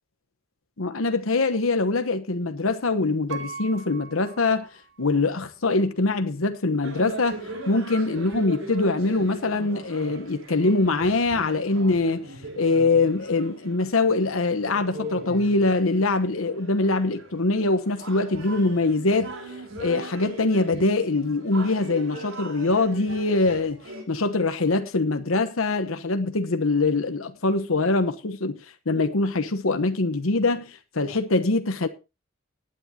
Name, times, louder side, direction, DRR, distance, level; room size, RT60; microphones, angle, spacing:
voice 1, 0.8-4.7 5.0-19.3 19.8-23.8 24.1-28.6 28.9-31.9, left 3 dB, 80° left, 1.1 m, -23 dB
Piano, 3.3-5.3 5.8-5.9, right 5 dB, 60° right, 2.3 m, -40 dB
sound 1, 6.8-24.0, right 1 dB, 75° right, 4.6 m, -40 dB
19.0 x 9.7 x 2.8 m
head